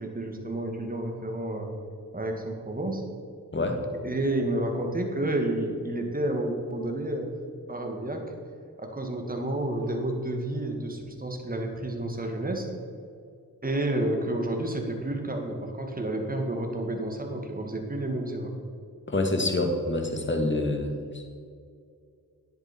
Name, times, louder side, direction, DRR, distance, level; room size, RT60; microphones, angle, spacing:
voice 1, 0.0-1.7 2.1-3.0 4.0-7.3 7.7-8.3 8.8-12.7 13.6-18.5, right 1 dB, 25° right, 3 dB, 2.1 m, -30 dB
voice 2, 19.1-21.3, left 2 dB, 30° left, 4 dB, 1.9 m, -27 dB
9.9 x 8.6 x 4.5 m, 2.3 s
supercardioid pair, 40°, 37 cm